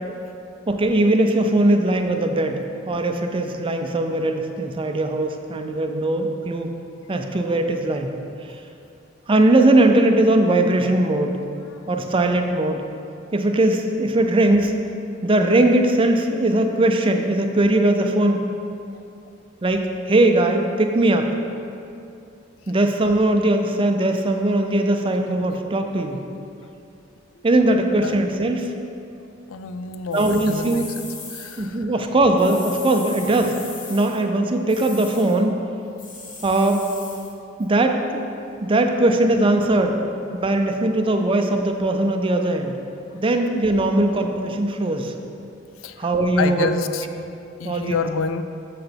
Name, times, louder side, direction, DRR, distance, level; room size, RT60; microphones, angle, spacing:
voice 1, 0.7-6.7 7.1-8.1 9.3-11.4 11.9-12.8 13.3-14.8 15.2-18.4 19.6-21.3 22.7-26.2 27.4-28.7 30.1-30.8 31.6-33.6 33.9-35.6 36.4-36.9 37.6-38.2 38.6-40.0 40.3-42.8 43.1-45.1 46.0-46.7 47.1-47.3 47.6-47.9, right 1 dB, 25° right, 5 dB, 0.5 m, -20 dB
voice 2, 29.5-31.9 45.8-46.1 46.4-47.1 47.6-48.4, left 5 dB, 90° left, 10 dB, 0.4 m, -28 dB
sound 1, 30.1-31.7 32.4-34.2 34.7-35.4 36.0-37.3, left 4 dB, 40° left, 1.0 m, -38 dB
8.0 x 6.7 x 3.5 m, 2.6 s
head